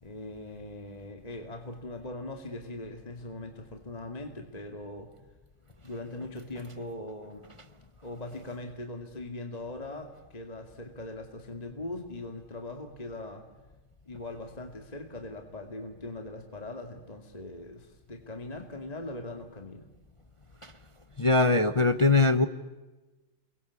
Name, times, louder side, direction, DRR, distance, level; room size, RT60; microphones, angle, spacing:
voice 1, 0.0-5.1 5.8-7.5 8.0-13.5 14.1-19.9, left 2 dB, 20° left, 5 dB, 2.3 m, -40 dB
voice 2, 21.2-22.4, left 3 dB, 55° left, 11 dB, 0.3 m, -22 dB
29.0 x 23.0 x 8.5 m, 1.1 s
omnidirectional pair, 2.3 m